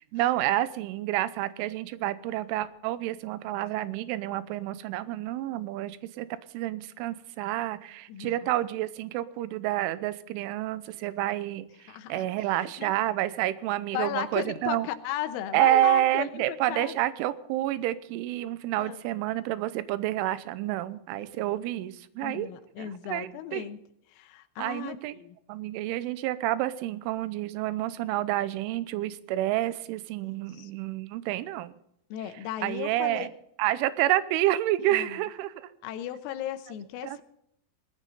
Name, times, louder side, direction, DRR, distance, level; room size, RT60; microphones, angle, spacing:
voice 1, 0.1-6.3 6.5-11.7 12.1-14.9 15.5-22.5 22.8-23.6 24.6-25.1 25.5-31.7 32.6-33.3 33.6-35.5 37.0-37.2, right 14 dB, 80° right, 14 dB, 3.1 m, -29 dB
voice 2, 8.1-8.4 11.9-12.3 12.6-12.9 13.9-17.0 18.7-19.0 21.2-21.4 22.2-23.8 24.1-25.4 30.5-30.7 32.1-33.3 34.8-35.2 35.8-37.2, left 11 dB, 90° left, 9 dB, 3.7 m, -36 dB
19.0 x 14.0 x 4.0 m, 0.73 s
omnidirectional pair, 5.9 m